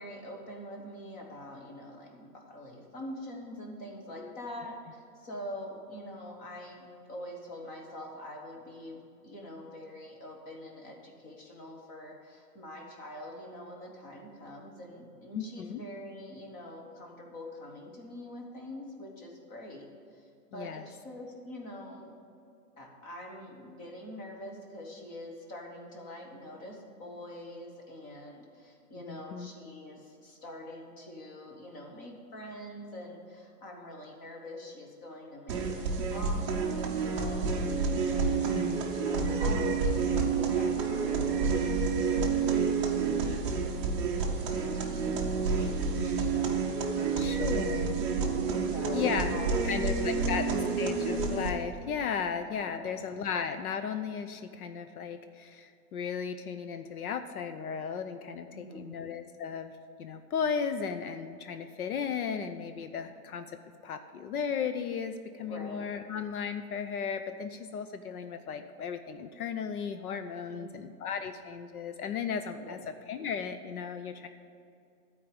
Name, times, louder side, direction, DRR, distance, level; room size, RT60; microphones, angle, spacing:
voice 1, 0.0-22.1 22.8-41.6 42.0-43.7 44.4-47.5 48.6-50.7 52.7-53.0 58.5-59.0 65.4-65.9 70.5-71.0 72.6-72.9, left 1 dB, 20° left, 0 dB, 1.1 m, -45 dB
voice 2, 15.3-15.8 20.5-20.9 29.0-29.5 38.5-38.9 39.1-39.5 47.2-48.0 48.9-50.5 50.8-59.7 60.0-63.5 63.8-72.8 73.1-74.3, left 6 dB, 65° left, 9 dB, 0.7 m, -35 dB
sound 1, 35.5-51.5, right 5 dB, 20° right, 0.7 m, -29 dB
12.0 x 4.7 x 8.5 m, 2.4 s
hypercardioid pair, 165°, 47 cm